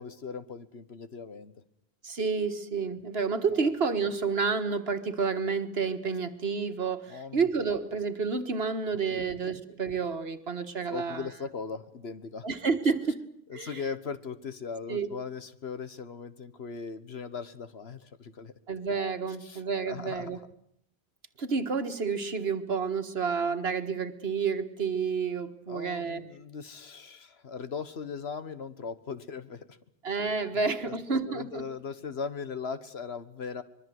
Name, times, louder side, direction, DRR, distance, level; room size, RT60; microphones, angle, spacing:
voice 1, 0.0-1.5 3.5-3.7 7.1-7.5 9.1-9.6 10.9-12.5 13.5-18.5 19.4-20.3 25.7-29.8 30.8-30.9 31.3-33.6, left 5 dB, 70° left, 12 dB, 1.7 m, -39 dB
voice 2, 2.0-11.3 12.4-13.2 13.5-13.8 14.9-15.1 18.7-20.4 21.4-26.2 30.0-31.7, right 5 dB, 70° right, 9 dB, 1.8 m, -30 dB
25.5 x 22.0 x 7.8 m, 0.69 s
omnidirectional pair, 1.1 m